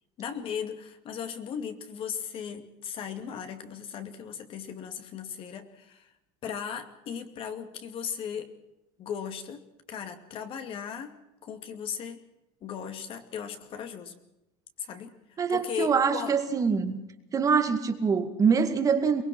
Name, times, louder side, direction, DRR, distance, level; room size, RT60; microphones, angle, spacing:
voice 1, 0.2-6.1 6.4-8.5 9.0-9.6 9.9-11.1 11.4-12.2 12.6-14.2 14.8-15.1 15.5-16.3, left 7 dB, 45° left, 8 dB, 2.4 m, -37 dB
voice 2, 15.4-17.0 17.3-19.2, right 6 dB, 25° right, 7 dB, 2.1 m, -24 dB
23.5 x 20.0 x 6.2 m, 0.92 s
cardioid pair, 140°, 13 cm